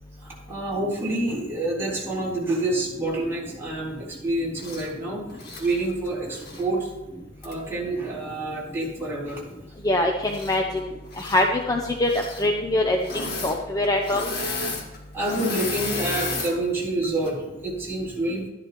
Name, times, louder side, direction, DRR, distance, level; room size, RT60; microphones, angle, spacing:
voice 1, 0.2-5.2 5.6-6.9 7.4-9.4 15.1-18.5, right 2 dB, 10° right, -7 dB, 3.9 m, -28 dB
Engine / Mechanisms, 4.6-4.9 5.3-6.7 7.4-7.5 10.2-10.8 11.1-11.5 12.0-12.5 13.0-13.6 13.8-16.5 17.0-17.3, left 3 dB, 55° left, 1.9 m, -32 dB
voice 2, 9.8-10.9 11.2-12.1 12.4-14.3, left 1 dB, 20° left, 1 dB, 0.7 m, -23 dB
13.0 x 11.0 x 3.0 m, 1.1 s
head